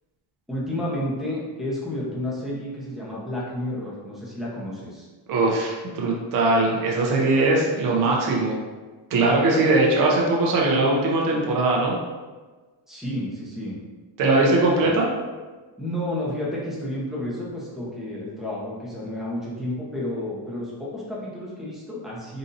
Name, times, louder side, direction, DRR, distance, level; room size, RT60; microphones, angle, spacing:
voice 1, 0.5-5.1 12.9-13.7 14.7-14.9 15.8-22.4, left 1 dB, ahead, -7 dB, 0.9 m, -31 dB
voice 2, 5.3-8.6 9.1-11.9 14.2-15.1, right 2 dB, 45° right, -2 dB, 0.7 m, -20 dB
3.9 x 2.7 x 2.6 m, 1.3 s
cardioid pair, 140°, 45 cm